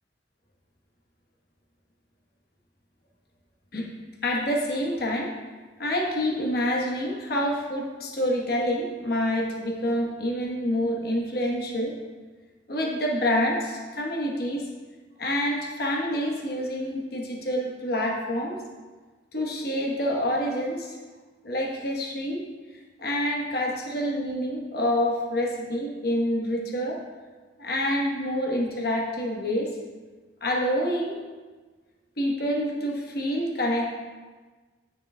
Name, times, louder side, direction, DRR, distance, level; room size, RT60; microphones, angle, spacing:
voice 1, 4.2-5.3 5.8-12.0 12.7-14.6 15.2-18.6 19.3-21.0 21.4-22.4 23.0-27.0 27.6-29.8 30.4-31.1 32.2-33.9, equal, 55° left, -1 dB, 1.1 m, -27 dB
9.9 x 6.2 x 2.2 m, 1.3 s
head